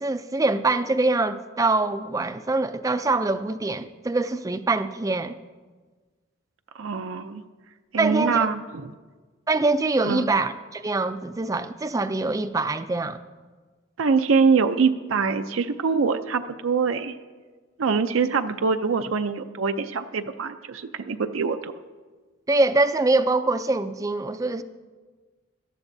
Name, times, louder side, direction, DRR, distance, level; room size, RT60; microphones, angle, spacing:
voice 1, 0.0-5.4 8.0-8.5 9.5-13.2 22.5-24.6, right 2 dB, 15° right, 11 dB, 0.4 m, -24 dB
voice 2, 6.7-7.4 7.9-8.9 10.0-10.3 14.0-17.2 17.8-21.7, right 5 dB, 80° right, 8 dB, 0.5 m, -24 dB
18.0 x 13.0 x 2.7 m, 1.4 s
head